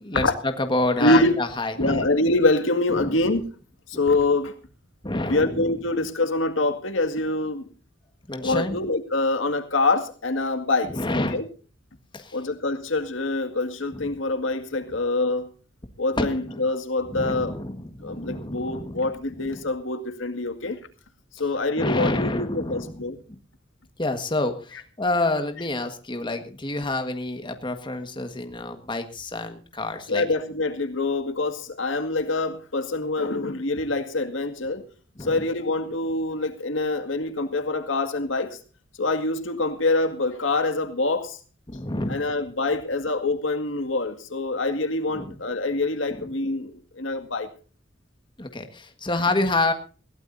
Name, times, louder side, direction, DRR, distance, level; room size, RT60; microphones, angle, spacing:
voice 1, 0.1-2.1 2.9-3.2 5.0-5.8 8.3-8.7 10.9-11.4 12.1-12.4 13.9-14.1 16.2-16.6 17.1-19.1 19.4-19.6 21.8-23.0 23.3-23.4 24.0-30.2 35.2-35.5 41.7-42.3 45.1-45.4 46.1-46.3 48.4-49.7, left 2 dB, 25° left, 6 dB, 1.6 m, -28 dB
voice 2, 1.0-1.3 1.8-3.4 3.9-4.5 5.3-7.7 8.4-11.4 12.3-15.5 16.0-17.5 18.0-20.8 21.4-23.2 30.1-34.8 35.2-38.6 39.0-41.4 42.1-47.5, left 2 dB, 85° left, 8 dB, 2.1 m, -25 dB
21.0 x 16.0 x 2.7 m, 0.37 s
head